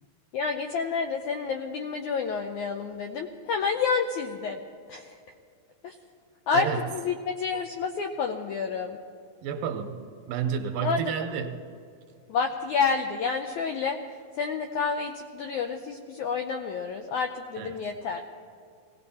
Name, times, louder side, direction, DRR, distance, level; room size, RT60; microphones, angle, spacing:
voice 1, 0.3-4.6 4.9-5.1 5.8-5.9 6.5-9.0 10.8-11.0 12.3-14.0 14.4-18.2, left 5 dB, 80° left, 5 dB, 1.7 m, -29 dB
voice 2, 9.4-10.0 10.3-11.6 17.6-17.8, right 7 dB, 75° right, 6 dB, 2.4 m, -30 dB
19.5 x 17.0 x 4.2 m, 2.3 s
omnidirectional pair, 4.2 m